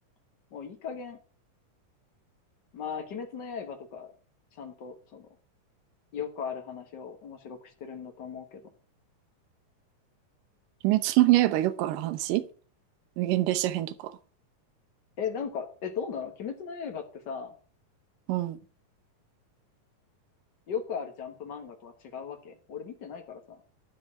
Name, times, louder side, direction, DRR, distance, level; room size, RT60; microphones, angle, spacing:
voice 1, 0.5-1.2 2.7-4.1 4.6-5.3 6.1-8.7 15.2-17.6 20.7-23.6, left 6 dB, 80° left, 0.9 m, -37 dB
voice 2, 10.8-12.5 13.2-14.1 18.3-18.6, right 16 dB, 80° right, 2.4 m, -25 dB
13.0 x 4.5 x 8.6 m
omnidirectional pair, 3.9 m